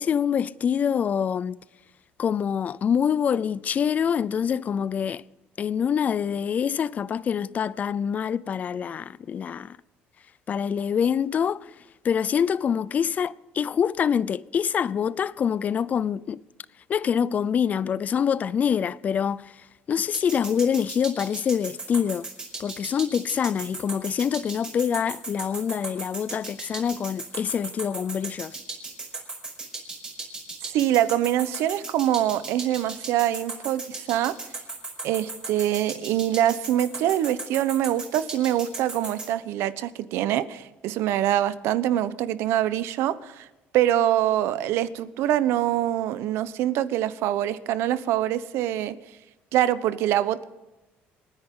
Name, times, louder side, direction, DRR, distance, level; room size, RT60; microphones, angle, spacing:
voice 1, 0.0-1.6 2.2-5.2 5.6-9.8 10.5-11.7 12.0-16.4 16.9-22.3 22.6-28.6, left 7 dB, 35° left, 0.5 m, -25 dB
sound 1, 20.1-39.3, right 3 dB, 20° right, 5.2 m, -36 dB
voice 2, 30.7-34.3 35.0-43.4 43.7-49.0 49.5-50.4, right 12 dB, 75° right, 0.9 m, -24 dB
28.0 x 10.0 x 3.8 m
cardioid pair, 130°, 4 cm